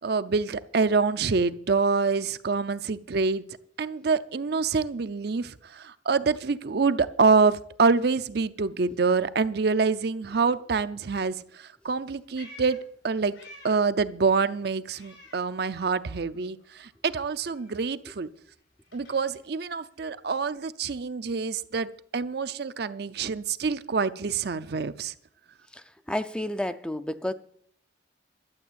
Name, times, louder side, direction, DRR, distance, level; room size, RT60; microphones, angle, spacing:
voice 1, 0.0-3.4 3.8-12.8 13.0-13.3 13.6-18.3 18.9-25.1, right 4 dB, 60° right, 0.5 m, -26 dB
Meow, 11.9-14.0 14.3-16.1 16.3-20.5, left 2 dB, 85° left, 5.0 m, -53 dB
voice 2, 25.7-27.3, left 1 dB, 5° left, 0.4 m, -31 dB
12.0 x 7.6 x 8.0 m
head